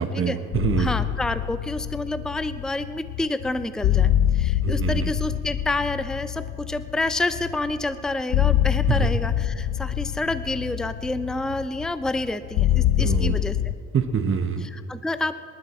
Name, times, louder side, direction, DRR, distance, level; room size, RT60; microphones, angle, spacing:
voice 1, 0.0-0.9 4.6-5.1 8.9-9.1 13.0-13.3 13.9-14.6, right 6 dB, 45° right, 8 dB, 1.1 m, -25 dB
sound 1, 0.5-13.7, left 12 dB, 90° left, 0.6 m, -25 dB
voice 2, 0.8-13.6 14.6-15.3, left 2 dB, ahead, 12 dB, 0.5 m, -28 dB
25.5 x 11.5 x 4.3 m, 2.3 s
cardioid pair, 90°, 30 cm